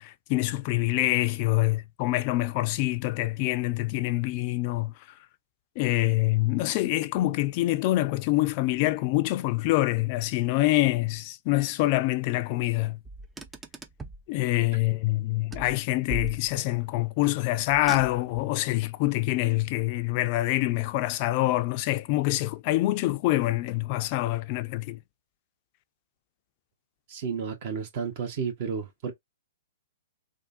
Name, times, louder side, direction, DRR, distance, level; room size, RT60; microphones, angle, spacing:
voice 1, 0.0-4.9 5.8-13.0 14.3-25.0, left 18 dB, 40° left, 0.4 m, -26 dB
Car, 13.1-14.3 15.5-16.8 17.7-18.5, right 2 dB, 10° right, 0.5 m, -39 dB
voice 2, 27.1-29.1, right 6 dB, 50° right, 1.4 m, -32 dB
3.6 x 2.4 x 2.7 m
hypercardioid pair, 120°, 0 cm